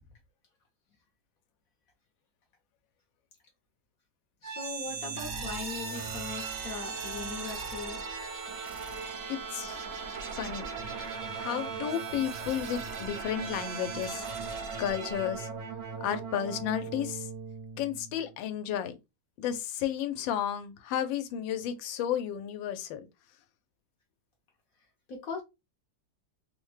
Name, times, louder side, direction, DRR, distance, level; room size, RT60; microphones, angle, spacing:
voice 1, 4.4-8.0 25.1-25.4, left 5 dB, 60° left, 1.0 m, -40 dB
sound 1, 4.4-18.3, right 5 dB, 65° right, 0.9 m, -38 dB
voice 2, 10.3-10.6 11.3-14.2 14.8-15.5 16.0-17.3 17.8-18.9 19.4-23.0, left 10 dB, 80° left, 1.3 m, -32 dB
3.4 x 2.1 x 3.2 m
omnidirectional pair, 2.1 m